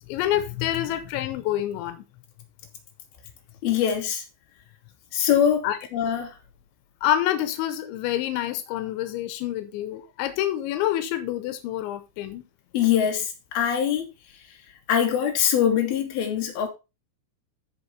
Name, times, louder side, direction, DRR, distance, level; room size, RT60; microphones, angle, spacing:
voice 1, 0.0-2.0 5.6-5.8 7.0-12.4, left 12 dB, 90° left, 3.3 m, -27 dB
voice 2, 3.6-4.2 5.1-5.7 5.9-6.3 12.7-14.1 14.9-16.7, left 9 dB, 60° left, 3.7 m, -23 dB
14.5 x 5.2 x 3.4 m
omnidirectional pair, 5.2 m